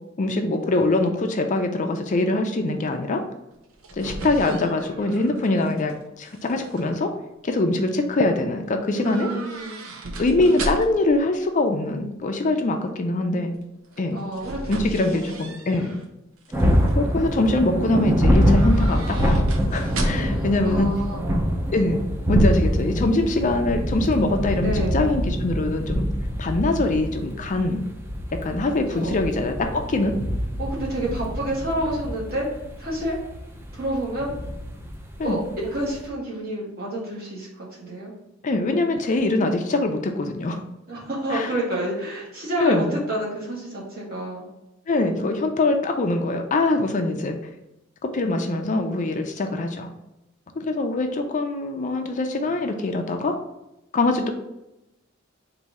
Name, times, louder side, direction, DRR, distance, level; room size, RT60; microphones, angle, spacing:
voice 1, 0.2-3.2 3.9-7.1 7.4-9.3 10.2-13.5 14.0-14.2 14.7-16.0 16.9-19.5 19.7-20.9 21.7-22.0 22.3-26.1 26.4-27.8 28.4-30.2 35.2-35.4 38.4-40.6 41.3-41.5 42.6-42.9 44.9-47.4 48.0-49.9 50.6-53.4 53.9-54.3, left 2 dB, 40° left, 5 dB, 0.4 m, -23 dB
sound 1, 3.5-5.9 6.2-6.8 9.0-11.1 13.9-16.0 16.5-16.9 18.4-20.5 20.8-20.9, right 1 dB, 80° right, 0.7 m, -34 dB
voice 2, 8.9-9.8 14.1-14.6 15.0-15.5 20.3-21.5 24.6-25.0 28.9-29.2 30.6-32.5 32.8-33.2 33.7-34.3 35.2-38.1 40.9-44.5, right 1 dB, 50° right, -4 dB, 1.6 m, -29 dB
sound 2, 16.5-36.1, equal, 10° right, 0.5 m, -25 dB
4.1 x 2.7 x 4.8 m, 0.91 s
head